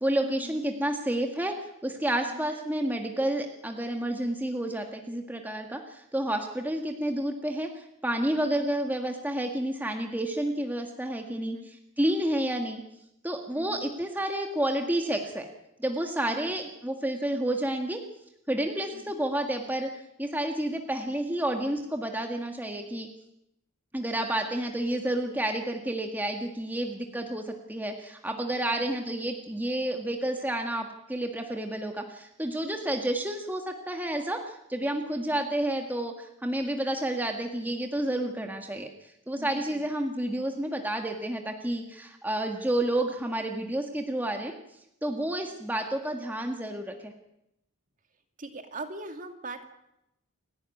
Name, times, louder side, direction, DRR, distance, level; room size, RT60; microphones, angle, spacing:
voice 1, 0.0-1.6 1.8-12.8 13.2-15.5 15.8-18.0 18.5-23.1 23.9-38.9 39.3-44.5 45.0-47.1, right 1 dB, 10° right, 3 dB, 1.7 m, -30 dB
voice 2, 11.3-11.7 13.5-13.8 16.3-16.5 18.9-19.1 28.6-28.9 39.4-39.8 48.4-49.7, right 2 dB, 40° right, 6 dB, 2.3 m, -42 dB
28.5 x 12.0 x 9.6 m, 0.84 s
head